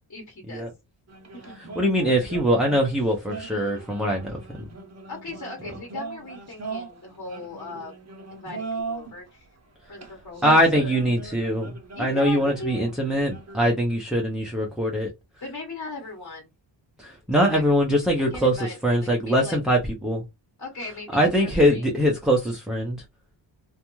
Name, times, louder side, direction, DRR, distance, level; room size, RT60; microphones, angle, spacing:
voice 1, 0.1-0.7 1.3-1.5 5.1-7.9 8.3-9.5 9.9-10.9 11.9-13.0 15.4-16.5 17.4-17.6 18.3-19.6 20.6-21.9, left 2 dB, 40° left, 1.1 m, -38 dB
sound 1, 1.1-9.2 9.9-14.0, right 4 dB, 35° right, 0.7 m, -39 dB
voice 2, 1.8-4.4 10.4-15.1 17.0-20.2 21.1-23.0, equal, ahead, 0.6 m, -22 dB
2.5 x 2.3 x 3.0 m
cardioid pair, 80°, 46 cm